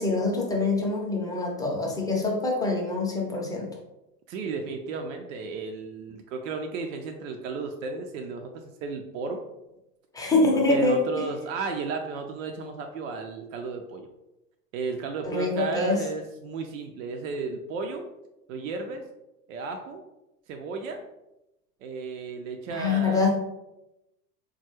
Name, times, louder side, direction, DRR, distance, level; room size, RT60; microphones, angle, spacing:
voice 1, 0.0-3.7 10.1-11.2 15.2-16.0 22.7-23.3, left 3 dB, 10° left, -2 dB, 0.6 m, -25 dB
voice 2, 4.3-9.4 10.5-14.1 14.7-18.1 18.5-19.0 19.5-20.0 20.5-21.0 21.8-23.3, right 4 dB, 55° right, 4 dB, 0.5 m, -34 dB
3.8 x 2.3 x 3.0 m, 0.93 s
figure-of-eight pair, 80°, 48 cm